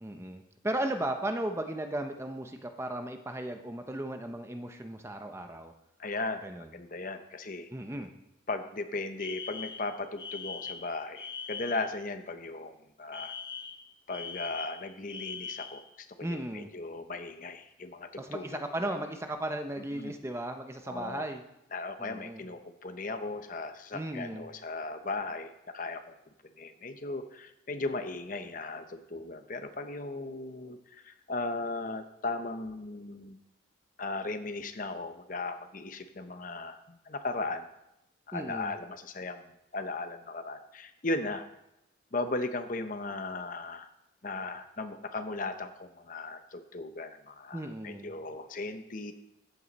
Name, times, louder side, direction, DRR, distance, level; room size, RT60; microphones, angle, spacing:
voice 1, 0.0-5.7 6.4-6.7 7.7-8.1 16.2-16.7 18.2-21.4 22.0-22.4 23.9-24.5 38.3-38.7 47.5-48.1, right 1 dB, 15° right, 6 dB, 0.7 m, -36 dB
voice 2, 6.0-6.4 6.7-7.7 8.5-13.3 14.1-19.0 19.9-20.1 20.9-21.3 21.7-26.1 26.6-33.4 34.0-37.7 38.3-39.4 39.7-41.5 42.1-43.9 44.2-49.1, left 3 dB, 40° left, 8 dB, 0.9 m, -37 dB
Alarm, 9.2-11.9 13.1-15.8, left 6 dB, 20° left, 0.5 m, -41 dB
14.0 x 9.2 x 4.1 m, 0.86 s
head